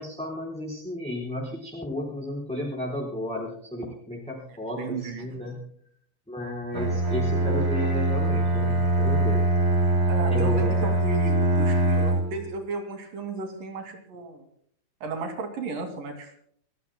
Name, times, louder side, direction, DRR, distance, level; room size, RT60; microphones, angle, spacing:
voice 1, 0.0-5.6 6.3-9.4 10.3-10.9, left 1 dB, ahead, -3 dB, 4.2 m, -33 dB
voice 2, 4.8-5.4 10.1-14.5 15.0-16.3, right 3 dB, 80° right, 5 dB, 4.1 m, -34 dB
Bowed string instrument, 6.7-12.4, right 2 dB, 30° right, 1.2 m, -23 dB
27.5 x 15.0 x 2.2 m, 0.62 s
omnidirectional pair, 3.8 m